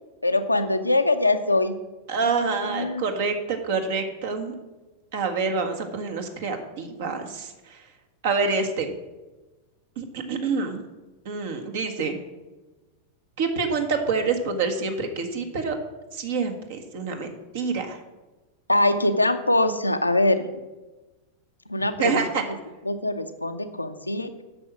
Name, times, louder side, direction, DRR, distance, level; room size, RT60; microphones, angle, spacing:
voice 1, 0.2-1.7 2.2-3.0 18.7-20.5 21.7-22.3 22.9-24.3, left 2 dB, 85° left, 8 dB, 0.7 m, -23 dB
voice 2, 2.1-4.5 5.1-7.8 8.2-8.9 10.0-10.8 11.2-12.2 13.4-15.8 16.1-18.0 22.0-22.4, right 4 dB, 55° right, 5 dB, 1.6 m, -27 dB
9.6 x 6.9 x 6.1 m, 1.1 s
figure-of-eight pair, 90°, 0 cm